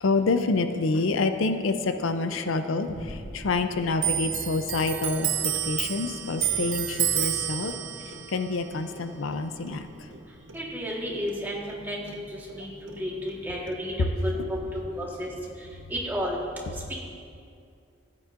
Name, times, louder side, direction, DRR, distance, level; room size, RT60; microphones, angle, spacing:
voice 1, 0.0-5.3 5.7-7.7 8.3-9.9 14.3-14.5, left 3 dB, 90° left, 9 dB, 0.5 m, -27 dB
sound 1, 2.9-7.7, equal, 50° left, 0.9 m, -45 dB
Clock, 4.0-11.0 11.3-12.6 12.9-13.7, right 11 dB, 70° right, 0.6 m, -31 dB
voice 2, 10.5-12.2 12.5-12.7 13.0-13.9 14.2-15.3 15.9-16.4, equal, 10° right, -4 dB, 1.4 m, -32 dB
15.0 x 9.6 x 2.5 m, 2.4 s
head